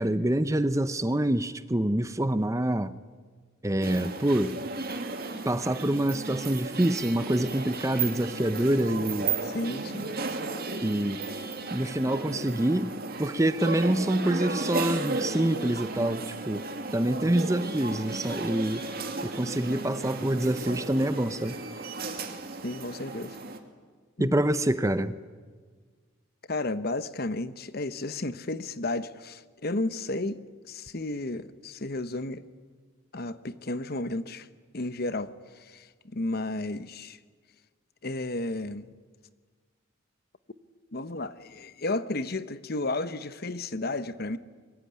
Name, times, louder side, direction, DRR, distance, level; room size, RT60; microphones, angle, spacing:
voice 1, 0.0-2.9 3.6-4.6 5.4-9.3 10.8-11.2 11.7-12.9 13.2-16.6 16.9-18.9 19.2-21.6 24.2-25.2, right 1 dB, 15° right, 0.7 m, -26 dB
sound 1, 3.8-23.6, right 3 dB, 45° right, 2.3 m, -34 dB
voice 2, 9.4-10.0 22.6-23.4 24.2-24.4 26.5-30.4 30.7-32.4 33.1-34.5 34.7-37.2 38.0-38.9 40.9-44.4, left 2 dB, 45° left, 1.0 m, -33 dB
25.5 x 23.0 x 9.6 m
head